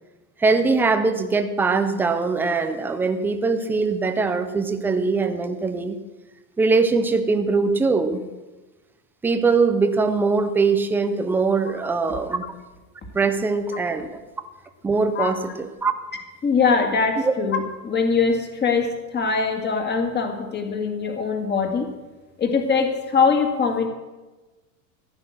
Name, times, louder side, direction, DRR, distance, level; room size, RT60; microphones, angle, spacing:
voice 1, 0.4-6.0 6.6-8.2 9.2-12.5 13.1-14.1 14.4-14.5 14.8-15.9 17.2-17.3, right 4 dB, 5° right, 8 dB, 0.3 m, -22 dB
voice 2, 16.4-21.9 22.4-23.9, left 5 dB, 20° left, 4 dB, 2.0 m, -22 dB
15.0 x 9.7 x 6.3 m, 1.1 s
supercardioid pair, 130°, 50 cm